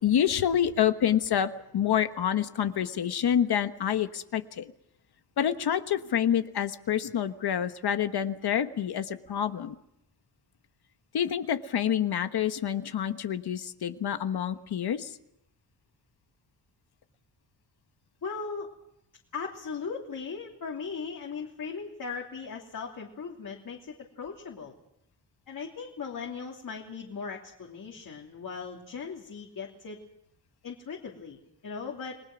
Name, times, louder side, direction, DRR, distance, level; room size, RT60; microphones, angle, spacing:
voice 1, 0.0-4.7 5.4-9.8 11.1-15.2, left 9 dB, 70° left, 9 dB, 1.3 m, -27 dB
voice 2, 18.2-18.7 19.3-24.7 25.5-30.0 30.6-32.2, left 5 dB, 55° left, -1 dB, 3.0 m, -38 dB
30.0 x 20.5 x 6.1 m, 0.79 s
wide cardioid pair, 145°, 40 cm